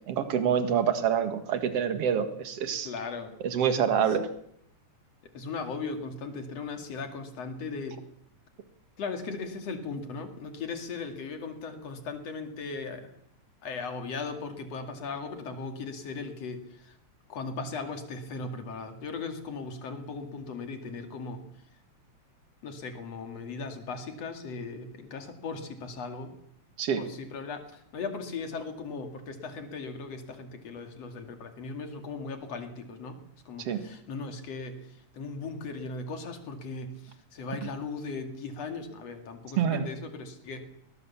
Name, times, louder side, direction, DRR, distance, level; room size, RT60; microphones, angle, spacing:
voice 1, 0.1-2.9 3.4-4.3 26.8-27.0 33.6-33.8 39.6-39.9, right 8 dB, 55° right, 9 dB, 2.6 m, -26 dB
voice 2, 2.8-3.3 5.3-8.0 9.0-13.1 13.6-17.0 17.3-21.4 22.6-26.3 27.0-33.2 33.5-40.6, left 4 dB, 60° left, 6 dB, 3.4 m, -38 dB
21.5 x 19.0 x 7.3 m, 0.72 s
omnidirectional pair, 3.4 m